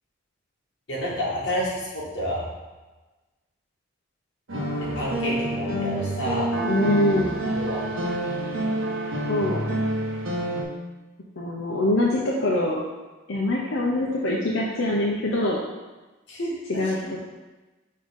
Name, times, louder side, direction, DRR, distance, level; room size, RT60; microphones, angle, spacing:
voice 1, 0.9-2.5 5.0-6.5 7.1-7.2 7.5-7.8 16.3-17.1, equal, 60° left, -6 dB, 1.8 m, -29 dB
sound 1, 4.5-10.6, right 1 dB, 85° right, 1.2 m, -27 dB
voice 2, 6.6-7.4 9.3-9.6 11.4-12.8 13.3-15.6 16.7-17.2, left 1 dB, 85° left, -3 dB, 0.7 m, -24 dB
5.4 x 3.8 x 5.2 m, 1.2 s
head